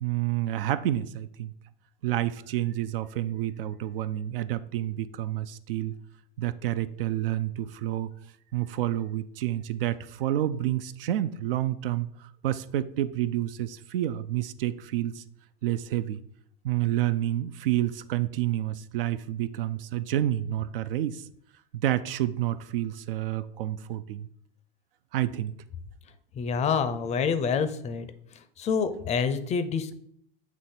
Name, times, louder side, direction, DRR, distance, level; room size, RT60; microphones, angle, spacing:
voice 1, 0.0-1.5 2.0-6.0 6.4-8.1 8.5-15.2 15.6-16.2 16.6-21.2 21.7-24.3 25.1-25.5, right 13 dB, 70° right, 0.5 m, -29 dB
voice 2, 26.4-28.1 28.6-30.0, left 6 dB, 25° left, 0.5 m, -27 dB
8.2 x 3.0 x 4.3 m
hypercardioid pair, 110°, 29 cm